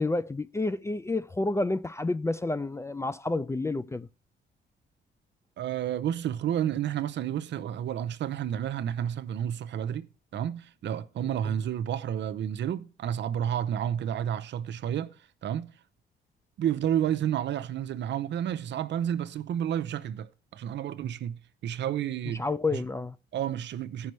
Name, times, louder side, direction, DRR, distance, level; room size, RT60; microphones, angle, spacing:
voice 1, 0.0-4.1 11.4-11.6 22.4-23.2, left 2 dB, 15° left, 0.3 m, -29 dB
voice 2, 5.6-15.1 15.4-15.7 16.6-22.4 22.7-22.8 23.3-24.1, right 10 dB, 65° right, 0.7 m, -31 dB
14.5 x 5.5 x 3.1 m
cardioid pair, 90°, 20 cm